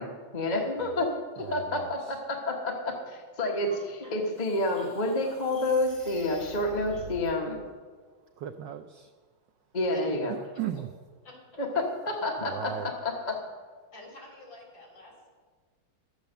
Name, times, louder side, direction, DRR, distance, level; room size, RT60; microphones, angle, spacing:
voice 1, 0.0-7.6 9.7-10.3 11.6-13.5, left 2 dB, 25° left, 0 dB, 1.0 m, -29 dB
voice 2, 1.4-2.2 8.1-9.1 10.3-10.9 12.4-12.9, right 11 dB, 75° right, 8 dB, 1.0 m, -38 dB
sound 1, 3.5-7.3, right 1 dB, 5° left, 4.4 m, -47 dB
voice 3, 11.2-11.6 13.9-15.3, left 3 dB, 55° left, -2 dB, 4.1 m, -47 dB
12.0 x 8.0 x 6.7 m, 1.5 s
omnidirectional pair, 2.4 m